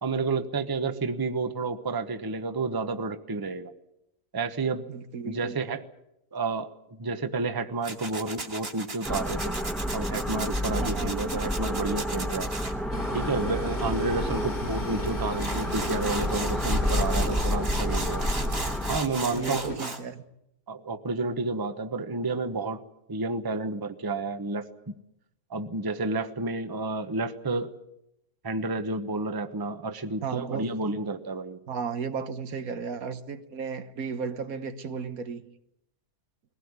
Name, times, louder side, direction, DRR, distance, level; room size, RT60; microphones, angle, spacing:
voice 1, 0.0-3.7 4.3-4.9 5.2-5.8 6.3-9.5 9.9-12.5 13.1-18.2 18.9-19.8 20.7-22.8 23.1-24.6 25.5-27.7 28.4-31.6, right 3 dB, 20° right, 0.9 m, -30 dB
voice 2, 4.9-5.6 10.7-11.2 19.3-20.2 30.2-31.0 31.7-35.5, right 5 dB, 70° right, 1.6 m, -34 dB
Tools, 7.8-12.7 15.1-15.2 15.4-20.0, right 2 dB, 40° right, 2.6 m, -36 dB
sound 1, 9.0-19.0, equal, ahead, 1.3 m, -29 dB
Train, 12.9-19.8, left 2 dB, 45° left, 2.3 m, -38 dB
21.0 x 17.0 x 9.5 m
omnidirectional pair, 1.5 m